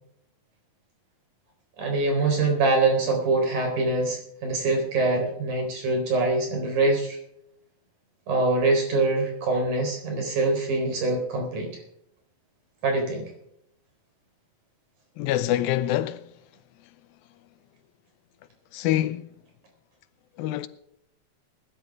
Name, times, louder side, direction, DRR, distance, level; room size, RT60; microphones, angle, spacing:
voice 1, 1.8-7.2 8.3-11.7 12.8-13.3, right 3 dB, 60° right, 5.5 m, -24 dB
voice 2, 15.2-16.2 18.7-19.3 20.4-20.7, left 13 dB, 85° left, 2.5 m, -25 dB
20.0 x 12.0 x 3.6 m
omnidirectional pair, 4.2 m